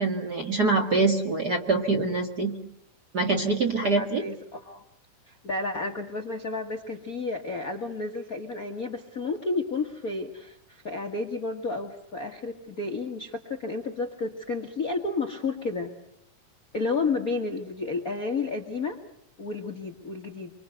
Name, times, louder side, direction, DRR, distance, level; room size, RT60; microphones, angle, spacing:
voice 1, 0.0-2.6 3.1-4.2, right 3 dB, 35° right, 3 dB, 1.9 m, -24 dB
voice 2, 3.6-4.8 5.3-15.9 16.7-19.0 19.4-20.5, left 3 dB, 40° left, 4 dB, 1.3 m, -31 dB
26.0 x 25.0 x 7.9 m, 0.70 s
omnidirectional pair, 3.8 m